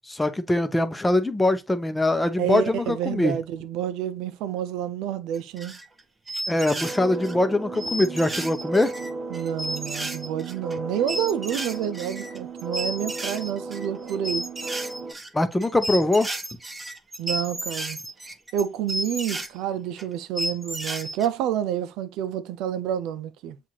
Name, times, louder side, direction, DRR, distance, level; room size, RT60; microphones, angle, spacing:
voice 1, 0.1-3.4 6.5-8.9 15.3-16.3, left 2 dB, 10° left, 0.8 m, -22 dB
voice 2, 2.4-5.8 9.3-14.5 17.2-18.0 18.5-23.6, right 10 dB, 90° right, 0.5 m, -29 dB
sound 1, 5.3-6.0 6.3-7.3 7.7-19.5 20.0-20.1 20.4-21.3, right 1 dB, 15° right, 0.9 m, -32 dB
sound 2, 6.8-15.1, right 3 dB, 50° right, 1.3 m, -36 dB
7.2 x 2.5 x 2.9 m
cardioid pair, 95°, 0 cm